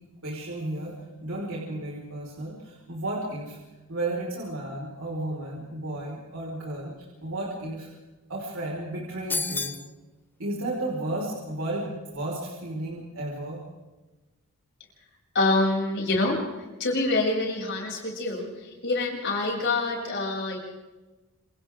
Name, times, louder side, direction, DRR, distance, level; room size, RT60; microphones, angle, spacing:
voice 1, 0.2-3.6 3.9-7.9 8.3-9.8 10.4-13.6, right 1 dB, 65° right, -4 dB, 5.2 m, -33 dB
sound 1, 9.3-9.9, left 3 dB, 10° left, 0.7 m, -29 dB
voice 2, 15.3-20.6, left 2 dB, 55° left, -2 dB, 7.5 m, -26 dB
28.5 x 28.0 x 3.8 m, 1.2 s
head